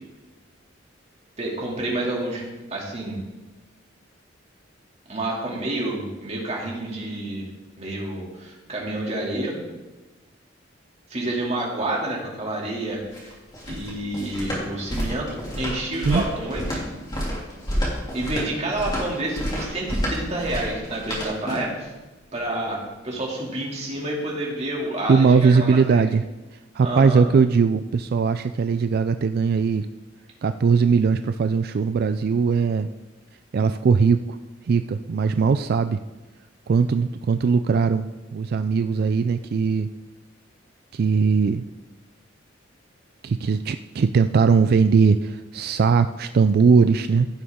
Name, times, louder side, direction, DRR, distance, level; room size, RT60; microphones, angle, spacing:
voice 1, 1.4-2.4 2.7-3.2 5.1-7.5 7.8-9.6 11.1-13.3 13.7-16.8 18.1-21.9 22.3-26.0 26.8-27.3, right 1 dB, 35° right, -2 dB, 2.7 m, -29 dB
sound 1, 12.9-21.8, equal, 20° left, 2.8 m, -30 dB
voice 2, 25.1-26.2 26.7-29.9 30.4-32.9 33.5-34.4 34.7-36.0 36.7-39.9 40.9-41.6 43.2-47.3, right 5 dB, 50° right, 10 dB, 0.3 m, -20 dB
16.0 x 7.0 x 3.7 m, 1.1 s
head